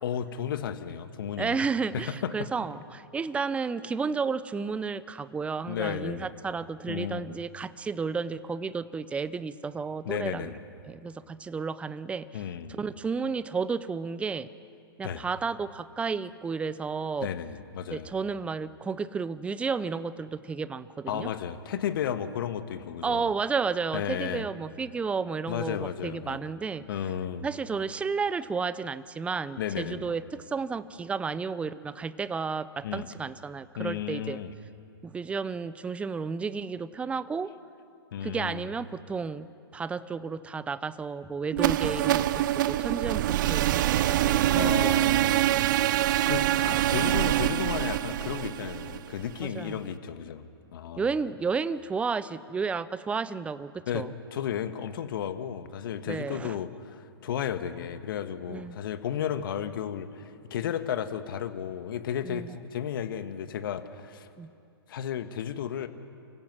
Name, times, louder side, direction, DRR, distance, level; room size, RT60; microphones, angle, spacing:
voice 1, 0.0-1.7 2.2-2.5 5.7-6.3 6.9-7.3 10.0-10.6 12.3-12.8 15.0-15.3 17.2-18.1 21.1-23.3 23.9-24.5 25.5-26.4 26.9-27.5 29.6-30.1 32.8-33.1 33.8-34.5 38.1-38.7 44.5-45.5 46.3-50.4 50.7-51.1 53.9-64.3 64.9-65.9, left 9 dB, 60° left, 10 dB, 1.5 m, -33 dB
voice 2, 1.4-10.5 10.8-12.4 12.7-14.5 15.0-17.3 17.9-21.3 23.0-26.8 27.4-34.4 35.0-37.5 38.2-39.5 39.7-43.2 43.5-43.8 44.2-45.1 49.5-49.8 51.0-54.1 56.1-56.6 58.5-58.8 62.2-62.6 64.4-64.5, right 5 dB, 10° right, 16 dB, 0.6 m, -32 dB
sound 1, 41.5-49.5, right 13 dB, 50° right, 0.7 m, -25 dB
29.5 x 16.5 x 6.1 m, 2.4 s
hypercardioid pair, 125°, 13 cm